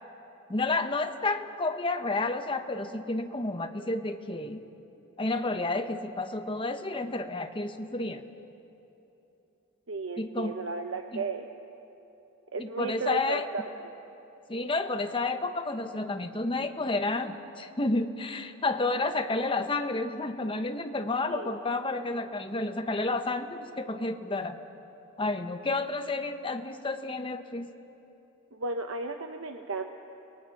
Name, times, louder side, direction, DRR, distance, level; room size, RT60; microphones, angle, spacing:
voice 1, 0.5-4.6 5.2-8.2 10.2-10.5 11.1-11.2 12.6-13.5 14.5-24.6 25.2-27.7, left 2 dB, 25° left, 7 dB, 1.0 m, -30 dB
voice 2, 9.9-11.5 12.5-13.6 21.3-21.6 28.5-29.9, right 3 dB, 70° right, 5 dB, 0.9 m, -34 dB
30.0 x 20.0 x 6.0 m, 3.0 s
head